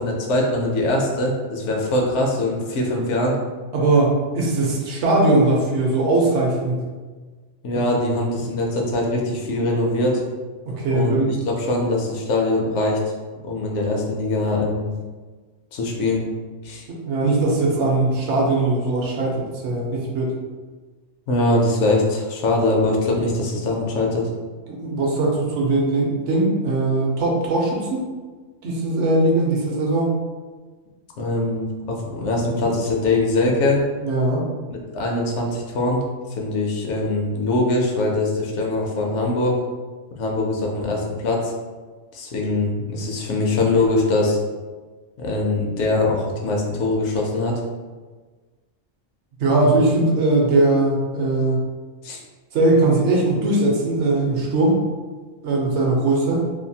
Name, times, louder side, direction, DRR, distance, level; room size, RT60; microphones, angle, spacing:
voice 1, 0.0-3.4 7.6-10.2 10.9-13.0 13.4-14.9 15.7-16.3 16.6-16.9 21.3-24.3 31.2-33.9 34.7-36.0 36.3-39.6 40.2-41.5 42.1-44.4 45.2-47.6 52.0-52.2, left 2 dB, 75° left, 0 dB, 0.9 m, -22 dB
voice 2, 3.7-6.8 8.4-8.5 10.7-11.3 16.9-20.3 24.7-28.0 28.6-30.1 34.0-34.4 49.4-51.6 52.5-54.8 55.4-56.4, right 2 dB, 70° right, -2 dB, 0.9 m, -20 dB
2.7 x 2.2 x 2.7 m, 1.4 s
omnidirectional pair, 1.3 m